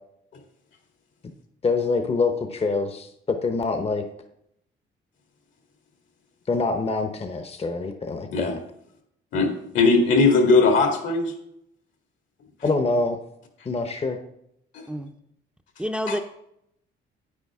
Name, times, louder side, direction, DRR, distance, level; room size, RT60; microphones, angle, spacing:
voice 1, 1.6-4.0 6.5-8.6 12.6-13.2 13.6-14.2, left 3 dB, 30° left, 7 dB, 0.8 m, -25 dB
voice 2, 9.7-11.3 14.7-14.8 16.1-16.2, left 3 dB, 75° left, 3 dB, 2.0 m, -19 dB
voice 3, 15.8-16.2, equal, 5° right, 6 dB, 0.6 m, -28 dB
9.9 x 8.9 x 3.6 m, 0.77 s
cardioid pair, 90°, 20 cm